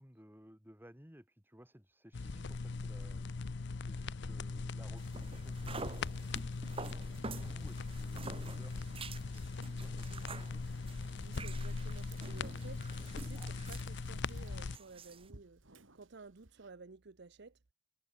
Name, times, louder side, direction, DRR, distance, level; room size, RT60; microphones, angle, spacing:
voice 1, 0.0-3.4 3.9-6.0 6.6-9.0 9.3-10.6, equal, 10° right, 7.1 m, -58 dB
sound 1, 2.1-14.8, left 4 dB, 60° left, 0.6 m, -40 dB
sound 2, 5.0-15.3, right 3 dB, 30° right, 1.3 m, -49 dB
voice 2, 9.7-10.5 11.2-15.6 15.9-17.6, right 3 dB, 60° right, 0.8 m, -54 dB
Frying (food), 11.3-16.7, right 5 dB, 75° right, 2.8 m, -61 dB
head